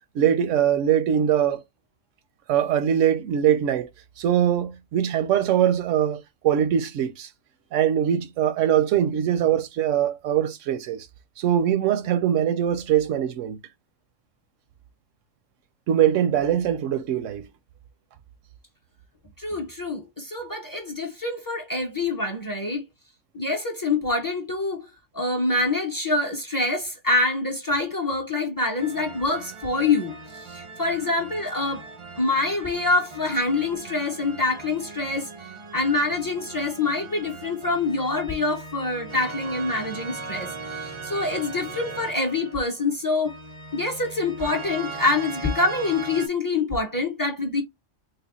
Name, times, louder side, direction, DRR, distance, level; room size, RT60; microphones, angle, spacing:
voice 1, 0.1-1.6 2.5-3.9 4.2-7.3 7.7-11.1 11.4-13.6 15.9-17.5, right 10 dB, 85° right, 1.0 m, -22 dB
voice 2, 19.4-22.8 23.3-24.9 25.1-31.8 32.2-43.3 43.7-47.6, left 3 dB, 25° left, 0.5 m, -26 dB
sound 1, 28.8-46.3, right 4 dB, 50° right, 0.3 m, -39 dB
3.4 x 2.2 x 3.6 m
omnidirectional pair, 1.3 m